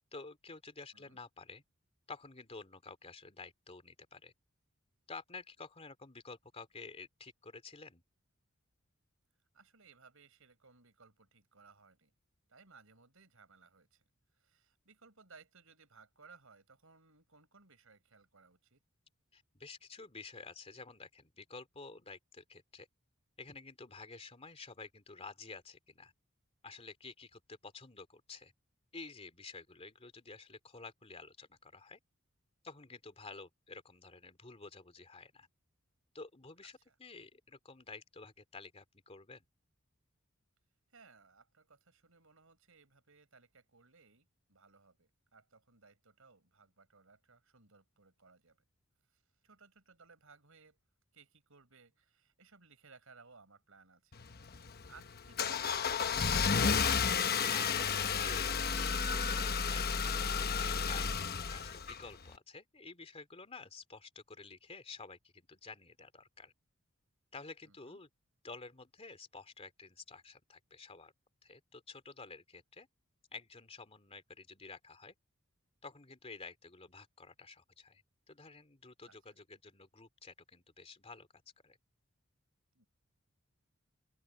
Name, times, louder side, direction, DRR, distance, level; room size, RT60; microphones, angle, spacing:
voice 1, 0.1-1.6 2.1-4.3 5.1-8.0 19.3-22.9 23.4-26.1 26.6-28.5 28.9-32.0 32.6-35.5 36.1-39.4 57.1-66.5 67.3-68.1 68.4-71.1 71.4-72.9 73.3-75.1 75.8-78.0 78.3-81.3 81.6-81.8, left 4 dB, 30° left, 2.7 m, -51 dB
voice 2, 9.5-12.1 12.5-14.0 14.3-18.8 36.8-37.0 40.9-48.6 49.1-50.8 51.1-54.1 54.5-56.3 67.6-68.0 79.0-79.2 82.7-82.9, right 4 dB, 70° right, 5.5 m, -62 dB
Car / Engine starting, 54.1-62.3, left 6 dB, 50° left, 1.0 m, -32 dB
open air
head